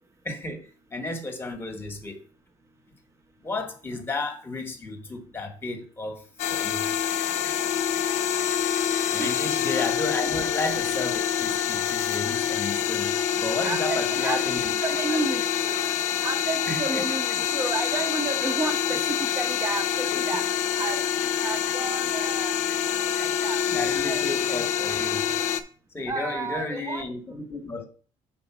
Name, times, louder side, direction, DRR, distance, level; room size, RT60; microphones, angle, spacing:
voice 1, 0.2-2.2 3.4-6.2 6.5-6.8 7.4-7.6 9.1-14.7 15.1-15.2 16.7-17.0 23.7-25.2 25.9-27.9, left 2 dB, 15° left, 1.1 m, -33 dB
sound 1, 6.4-25.6, left 9 dB, 60° left, 0.6 m, -26 dB
voice 2, 13.6-15.8 16.2-20.4 20.8-21.0 21.4-22.6 22.9-23.6 24.1-24.2 26.1-27.1, right 3 dB, 20° right, 0.8 m, -32 dB
5.1 x 4.1 x 5.8 m
cardioid pair, 165°, 13 cm